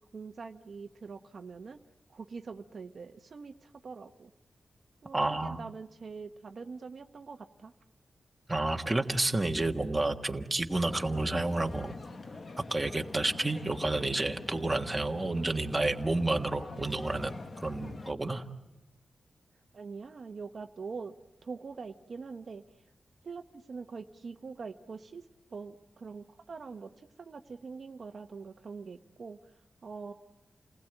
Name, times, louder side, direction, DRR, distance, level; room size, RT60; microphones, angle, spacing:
voice 1, 0.1-1.8 2.1-4.3 5.0-7.7 19.7-21.1 21.4-22.6 23.2-25.2 25.5-29.5 29.8-30.1, right 4 dB, 50° right, 6 dB, 1.1 m, -44 dB
voice 2, 5.1-5.6 8.5-11.9 12.6-18.4, right 2 dB, 15° right, 4 dB, 1.5 m, -30 dB
sound 1, 10.7-18.1, left 3 dB, 40° left, 1.3 m, -45 dB
29.5 x 20.0 x 9.1 m, 0.97 s
wide cardioid pair, 155°, 0 cm